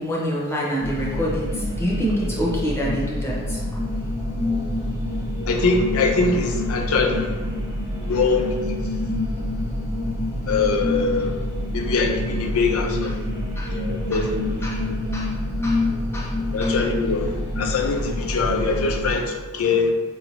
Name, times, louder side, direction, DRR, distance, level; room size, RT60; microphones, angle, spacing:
voice 1, 0.0-1.4 1.8-3.6 13.0-13.1 13.6-13.7 14.1-14.3 14.6-14.8 15.1-15.3 15.6-15.8 16.1-16.3 16.6-16.8, equal, 10° left, -5 dB, 0.6 m, -26 dB
sound 1, 0.8-19.2, left 1 dB, 15° right, 1.0 m, -27 dB
voice 2, 5.5-7.3 8.1-8.7 10.5-11.3 11.7-13.1 13.7-14.7 16.5-19.9, left 4 dB, 70° left, 3 dB, 0.5 m, -23 dB
4.2 x 2.6 x 2.7 m, 1.3 s
head